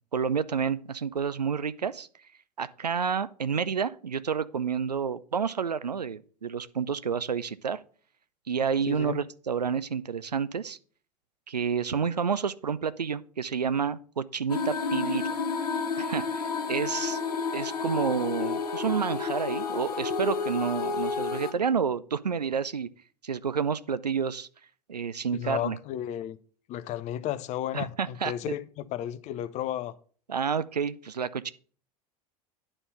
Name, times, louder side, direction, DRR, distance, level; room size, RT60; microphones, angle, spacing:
voice 1, 0.1-2.1 2.6-7.8 8.5-10.8 11.5-15.3 16.0-17.2 17.5-22.9 23.2-24.5 24.9-25.8 27.7-28.3 30.3-31.5, right 6 dB, 85° right, 0.4 m, -29 dB
voice 2, 8.9-9.2 25.3-26.4 26.7-29.9, left 11 dB, 35° left, 0.6 m, -33 dB
sound 1, 14.5-21.5, left 5 dB, 75° left, 1.0 m, -30 dB
9.8 x 4.2 x 5.3 m
figure-of-eight pair, 80°, 20 cm